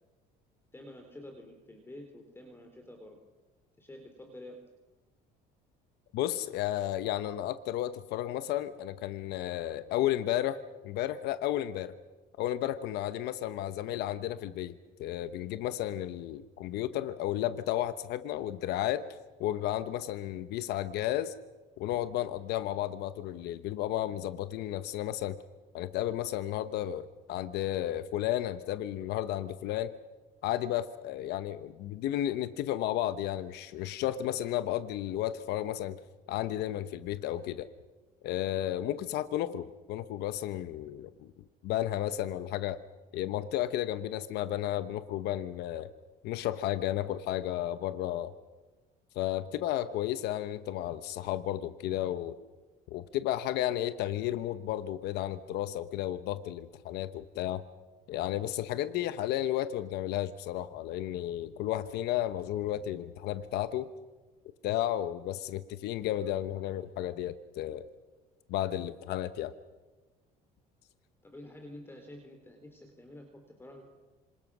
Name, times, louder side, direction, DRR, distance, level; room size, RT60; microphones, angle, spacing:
voice 1, 0.7-3.2 3.8-4.6 66.2-66.8 71.2-73.9, left 1 dB, 15° left, 4 dB, 3.6 m, -49 dB
voice 2, 6.1-11.9 12.4-14.7 15.0-19.1 19.4-21.3 21.8-25.4 25.7-29.9 30.4-36.0 36.3-37.7 38.2-41.3 41.6-42.8 43.1-45.9 46.2-48.3 49.1-52.4 52.9-57.6 58.1-63.9 64.6-67.9 68.5-69.5, left 12 dB, 75° left, 12 dB, 1.0 m, -33 dB
27.0 x 26.5 x 6.2 m, 1.2 s
cardioid pair, 120°, 17 cm